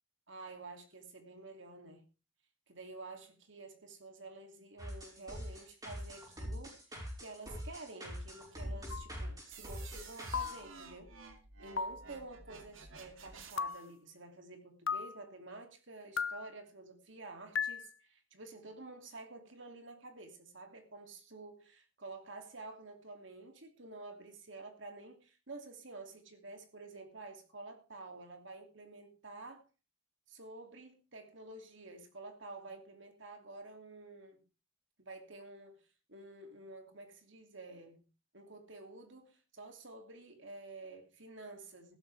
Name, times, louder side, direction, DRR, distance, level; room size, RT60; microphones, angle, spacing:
voice 1, 0.3-2.0 2.7-6.7 7.2-11.1 11.6-29.7 30.3-34.5 35.0-38.0 38.3-42.0, right 2 dB, 70° right, 2.8 m, -50 dB
sound 1, 4.8-10.6, equal, 20° right, 5.4 m, -43 dB
sound 2, 8.9-9.1 10.3-10.7 11.8-12.1 13.6-13.9 14.9-15.2 16.2-16.5 17.6-17.9, left 6 dB, 75° left, 0.6 m, -36 dB
sound 3, 9.5-13.9, right 4 dB, 85° right, 2.6 m, -53 dB
15.0 x 13.0 x 3.5 m
head